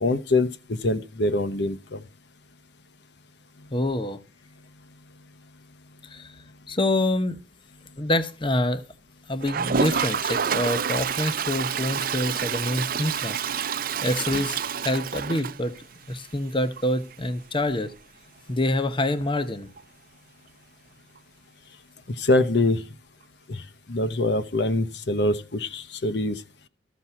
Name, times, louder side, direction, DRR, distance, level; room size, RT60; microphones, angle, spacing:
voice 1, 0.0-2.0 22.2-22.8 23.5-23.6 23.9-26.4, left 2 dB, 70° left, 0.9 m, -24 dB
voice 2, 3.7-4.2 6.1-6.3 6.7-7.4 8.0-8.8 9.3-13.4 14.0-15.7 16.1-17.9 18.5-19.7, left 1 dB, 30° left, 0.9 m, -26 dB
Toilet flush, 9.4-16.1 16.5-16.6 16.8-16.9 17.1-17.2 19.8-19.9 21.2-21.3, right 7 dB, 55° right, 0.6 m, -28 dB
13.5 x 6.0 x 5.7 m
head